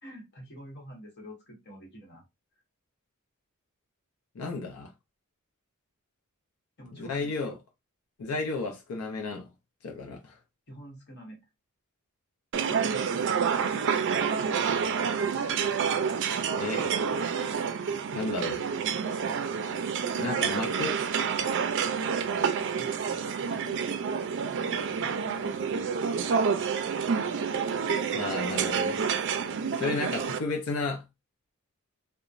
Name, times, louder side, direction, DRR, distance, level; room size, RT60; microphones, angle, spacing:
voice 1, 0.0-2.2 6.8-7.6 10.7-11.4 12.6-13.9 14.4-14.7 22.6-23.0 23.4-23.8 24.4-25.8, equal, 50° left, 1.2 m, -47 dB
voice 2, 4.4-4.9 6.9-7.6 8.2-9.5 9.8-10.4 16.5-16.9 18.1-18.6 20.1-21.0 28.1-29.0 29.7-31.0, left 3 dB, 85° left, 0.5 m, -33 dB
sound 1, 12.5-30.4, right 6 dB, 55° right, 0.4 m, -28 dB
2.9 x 2.1 x 2.5 m
head